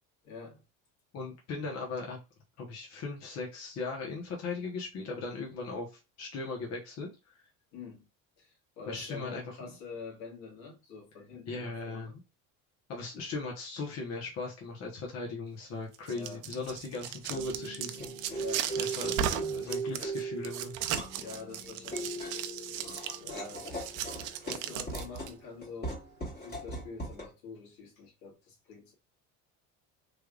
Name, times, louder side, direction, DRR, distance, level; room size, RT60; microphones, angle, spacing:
voice 1, 0.2-0.6 7.7-8.1 8.4-12.2 16.1-16.4 18.3-18.7 21.1-23.9 24.2-28.9, left 4 dB, 80° left, 1.9 m, -47 dB
voice 2, 1.1-2.2 2.6-7.4 8.9-9.7 11.5-12.2 12.9-18.4 18.8-20.7, left 3 dB, 50° left, 1.2 m, -38 dB
sound 1, 15.9-25.3, right 10 dB, 65° right, 0.6 m, -36 dB
sound 2, 16.4-27.3, right 2 dB, 30° left, 1.7 m, -39 dB
3.4 x 3.3 x 2.4 m
cardioid pair, 120°, 33 cm